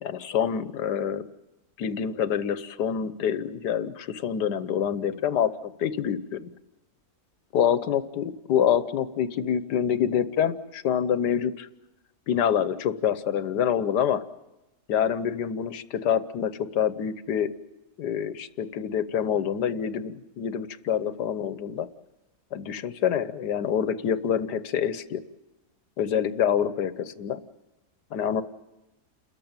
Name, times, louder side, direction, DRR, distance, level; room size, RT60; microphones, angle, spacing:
voice 1, 0.0-1.2 1.8-6.5 7.5-11.7 12.3-14.2 14.9-17.5 18.0-21.9 22.5-25.2 26.0-27.4 28.1-28.4, left 8 dB, 85° left, 13 dB, 1.5 m, -26 dB
29.5 x 14.0 x 8.8 m, 1.0 s
omnidirectional pair, 1.7 m